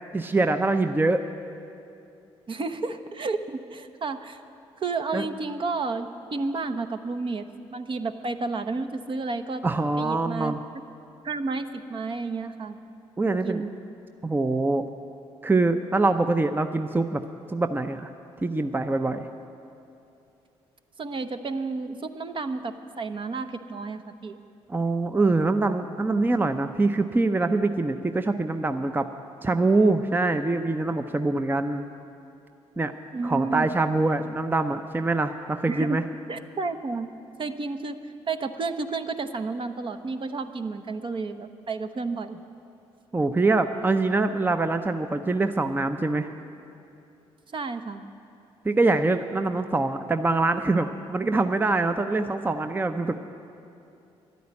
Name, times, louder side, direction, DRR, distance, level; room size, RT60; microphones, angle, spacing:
voice 1, 0.1-1.2 5.1-5.2 9.6-10.6 13.2-13.6 14.2-14.9 15.4-17.2 17.5-18.1 18.4-19.3 24.7-29.1 29.4-31.8 32.8-32.9 33.2-36.0 43.1-46.3 48.6-53.2, right 3 dB, 15° right, 9 dB, 0.6 m, -24 dB
voice 2, 2.5-4.4 4.8-7.4 7.7-9.6 10.0-10.5 11.2-12.8 13.4-13.7 21.0-24.4 33.1-33.7 35.7-36.0 36.3-37.1 37.4-38.0 38.3-42.4 47.5-48.0 51.2-51.3, right 3 dB, 45° right, 9 dB, 0.8 m, -31 dB
11.0 x 9.4 x 9.6 m, 2.7 s
supercardioid pair, 60°, 12 cm